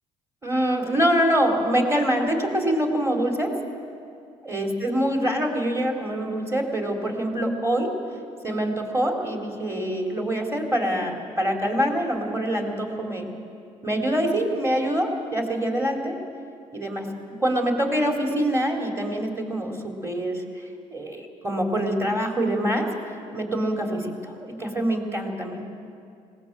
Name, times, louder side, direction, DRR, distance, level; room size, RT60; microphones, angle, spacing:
voice 1, 0.4-3.5 4.4-7.9 8.4-13.3 13.8-16.2 16.7-17.1 17.4-20.6 20.9-25.7, right 1 dB, 20° right, 1 dB, 4.2 m, -25 dB
19.5 x 18.0 x 7.8 m, 2.4 s
supercardioid pair, 65°, 14 cm